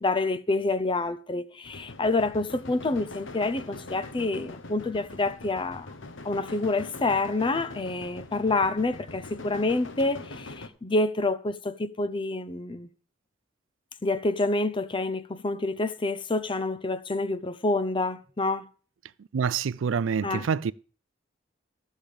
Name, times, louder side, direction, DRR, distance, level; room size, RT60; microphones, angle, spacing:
voice 1, 0.0-5.9 6.2-12.9 14.0-18.7 20.2-20.5, left 2 dB, 25° left, 0.6 m, -27 dB
sound 1, 1.6-10.7, left 2 dB, 70° left, 1.0 m, -43 dB
voice 2, 19.3-20.7, right 6 dB, 75° right, 0.4 m, -26 dB
13.5 x 7.3 x 5.1 m
head